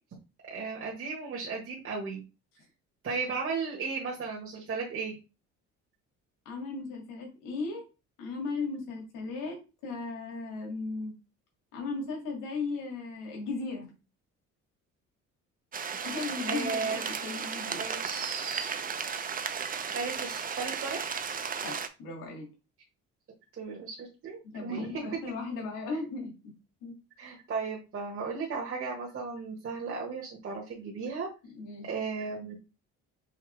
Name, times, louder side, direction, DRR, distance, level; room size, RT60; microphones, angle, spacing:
voice 1, 0.5-2.2 3.0-5.2 16.5-17.0 17.7-18.7 19.9-21.1 23.6-25.2 27.2-31.3 31.9-32.5, right 4 dB, 45° right, -3 dB, 1.4 m, -35 dB
voice 2, 6.5-7.8 8.2-9.6 9.8-11.1 11.7-13.9 16.0-17.9 21.6-22.5 24.4-26.5 26.8-26.9 31.5-31.9, left 3 dB, 80° left, 0 dB, 2.2 m, -36 dB
sound 1, 15.7-21.9, right 6 dB, 25° right, 0.6 m, -35 dB
5.6 x 2.8 x 3.2 m, 0.30 s
cardioid pair, 90°, 31 cm